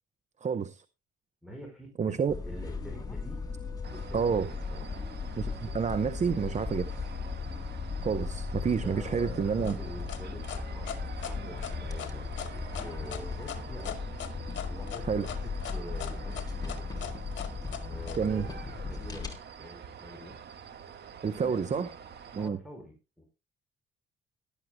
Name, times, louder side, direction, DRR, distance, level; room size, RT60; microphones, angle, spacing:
voice 1, 0.4-0.8 2.0-2.3 4.1-4.5 5.4-6.9 8.0-9.8 15.1-15.3 18.2-18.5 21.2-21.9 22.3-22.6, right 6 dB, 35° right, 0.8 m, -29 dB
voice 2, 1.4-1.9 2.4-3.4 3.9-4.8 8.8-14.0 14.7-16.9 17.8-20.4 21.2-21.9 22.3-23.2, equal, ahead, 5.1 m, -46 dB
sound 1, 2.3-19.3, left 4 dB, 20° left, 3.3 m, -37 dB
sound 2, 3.8-22.5, right 7 dB, 55° right, 1.6 m, -47 dB
sound 3, 9.6-18.2, left 9 dB, 70° left, 1.8 m, -40 dB
18.0 x 12.5 x 2.2 m
cardioid pair, 90°, 20 cm